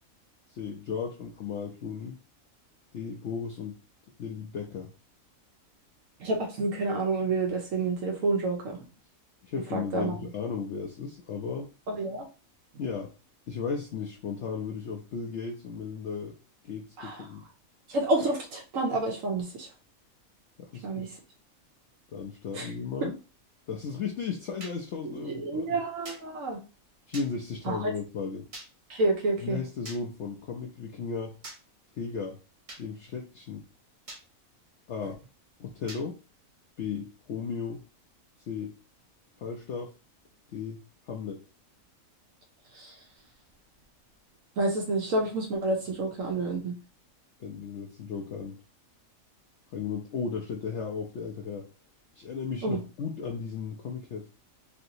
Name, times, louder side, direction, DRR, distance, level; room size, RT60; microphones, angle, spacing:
voice 1, 0.5-2.2 2.9-3.8 4.2-4.9 9.4-11.7 12.8-13.1 13.5-16.4 16.6-17.4 20.6-21.0 22.1-23.2 23.7-25.8 27.1-28.5 29.4-31.3 32.0-32.4 32.8-33.6 34.9-35.2 35.6-36.2 36.8-37.8 38.5-38.8 39.4-39.9 40.5-40.8 41.1-41.4 47.4-48.6 49.7-51.7 52.2-54.3, left 5 dB, 65° left, 0 dB, 0.8 m, -35 dB
voice 2, 6.2-8.8 9.7-10.2 11.9-12.3 17.0-17.2 17.9-19.7 20.8-21.1 22.5-22.7 23.0-23.1 25.0-26.6 27.6-27.9 28.9-29.6 42.7-42.9 44.6-46.7 52.6-52.8, right 2 dB, 70° right, 1 dB, 1.1 m, -29 dB
sound 1, 24.6-24.8 26.1-26.2 27.1-27.3 28.5-28.7 29.9-30.0 31.4-31.6 32.7-32.8 34.1-34.2 35.9-36.0, right 2 dB, 35° right, 0.5 m, -42 dB
3.3 x 2.8 x 2.6 m, 0.32 s
omnidirectional pair, 1.5 m